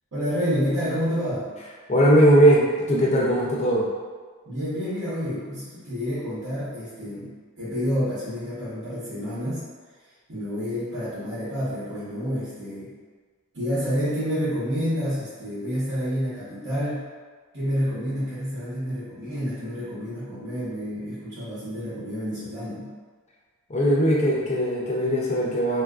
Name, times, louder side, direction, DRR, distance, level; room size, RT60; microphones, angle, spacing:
voice 1, 0.1-1.5 4.4-7.3 7.6-9.6 10.3-12.9 13.5-17.1 17.5-22.9, equal, 65° right, -12 dB, 1.0 m, -29 dB
voice 2, 1.9-3.9 23.7-25.8, right 1 dB, 30° left, -3 dB, 0.5 m, -19 dB
3.5 x 2.4 x 2.3 m, 1.5 s
head